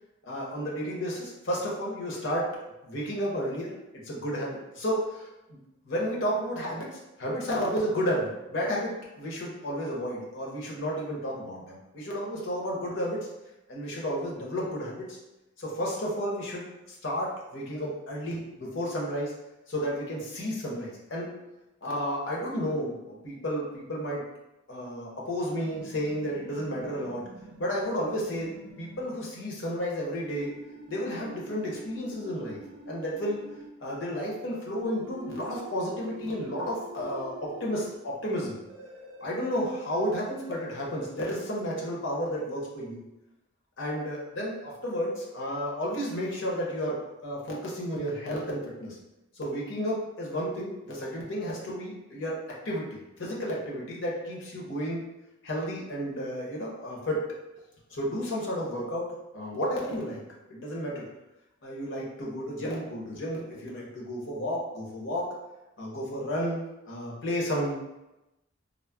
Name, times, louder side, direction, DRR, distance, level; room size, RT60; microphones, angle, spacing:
voice 1, 0.2-2.6 2.8-5.6 5.8-13.3 13.7-15.2 15.6-19.4 19.7-21.3 21.8-24.2 24.7-27.3 27.6-30.5 30.9-32.6 32.9-33.4 33.8-38.6 39.2-43.0 43.8-49.0 49.4-52.4 52.6-55.0 55.4-57.3 57.9-60.2 60.5-61.0 61.6-65.3 65.8-67.7, equal, 65° left, -3 dB, 0.7 m, -32 dB
sound 1, 25.6-29.1 30.2-33.7 34.8-38.0 38.7-41.1, right 2 dB, 65° right, 0.3 m, -46 dB
3.6 x 2.0 x 2.3 m, 0.96 s
head